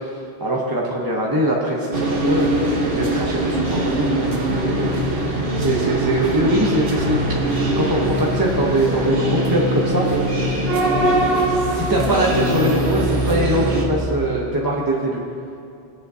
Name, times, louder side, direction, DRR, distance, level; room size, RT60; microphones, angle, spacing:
voice 1, 0.4-2.6 2.9-4.3 5.6-7.4 7.8-10.1 11.5-15.2, right 1 dB, 20° right, -3 dB, 0.8 m, -22 dB
sound 1, 1.9-13.9, right 2 dB, 60° right, 1.3 m, -22 dB
sound 2, 3.1-14.2, left 2 dB, 20° left, 0.8 m, -27 dB
19.0 x 6.7 x 2.8 m, 2.6 s
omnidirectional pair, 1.1 m